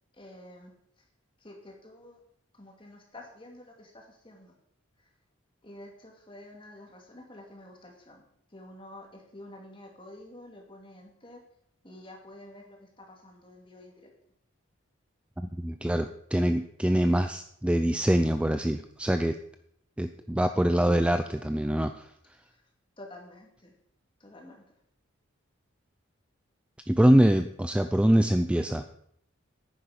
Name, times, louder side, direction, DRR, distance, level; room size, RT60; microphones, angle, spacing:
voice 1, 0.1-0.7 1.0-1.1 1.4-2.2 2.5-4.5 5.0-5.1 5.6-8.2 8.5-11.4 11.8-14.1 22.5-22.6 23.0-23.7 24.2-24.6, left 1 dB, 25° left, 1 dB, 2.4 m, -49 dB
voice 2, 15.4-19.4 20.0-22.1 26.9-28.8, right 1 dB, 5° right, 9 dB, 0.3 m, -24 dB
10.0 x 9.9 x 5.1 m, 0.70 s
head